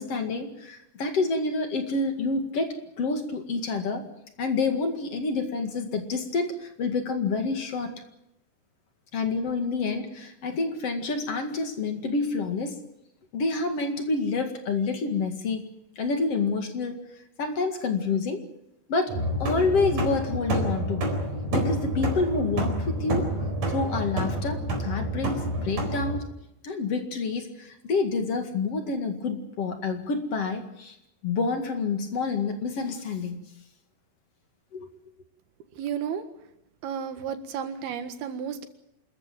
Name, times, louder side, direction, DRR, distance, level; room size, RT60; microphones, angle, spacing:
voice 1, 0.0-4.0 4.4-7.9 9.1-12.8 13.3-15.6 16.0-17.0 17.4-18.4 18.9-21.0 21.5-23.3 23.7-26.3 26.6-31.0 31.2-33.4 34.7-34.9, left 4 dB, 45° left, 6 dB, 2.6 m, -28 dB
sound 1, 19.1-26.2, right 1 dB, 45° right, 5.4 m, -28 dB
voice 2, 35.7-36.2 36.8-38.7, right 8 dB, 80° right, 9 dB, 3.6 m, -32 dB
27.0 x 14.0 x 9.2 m, 0.83 s
omnidirectional pair, 4.4 m